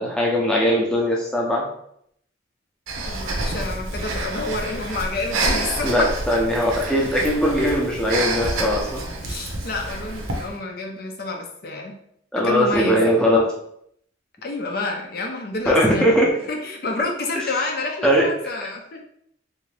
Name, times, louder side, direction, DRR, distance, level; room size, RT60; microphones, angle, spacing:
voice 1, 0.0-1.6 5.8-9.0 12.3-13.4 15.7-16.3 18.0-18.3, equal, 5° left, -3 dB, 0.6 m, -20 dB
Breathing, 2.9-10.5, right 2 dB, 85° right, 0.7 m, -28 dB
voice 2, 3.1-6.1 9.2-11.9 12.4-13.2 14.4-16.2 16.5-19.0, left 3 dB, 50° left, 2 dB, 0.5 m, -29 dB
3.6 x 2.6 x 3.3 m, 0.70 s
head